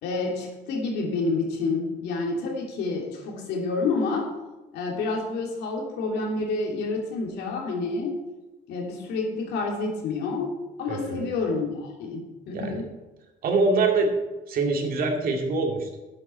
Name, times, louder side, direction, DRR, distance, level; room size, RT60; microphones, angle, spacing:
voice 1, 0.0-4.3 4.7-8.2 8.7-12.9, left 3 dB, 80° left, 1 dB, 2.9 m, -29 dB
voice 2, 10.9-11.3 12.5-12.9 13.4-14.1 14.5-16.0, right 3 dB, 60° right, 3 dB, 2.4 m, -24 dB
12.5 x 8.6 x 4.5 m, 1.1 s
cardioid pair, 110°, 17 cm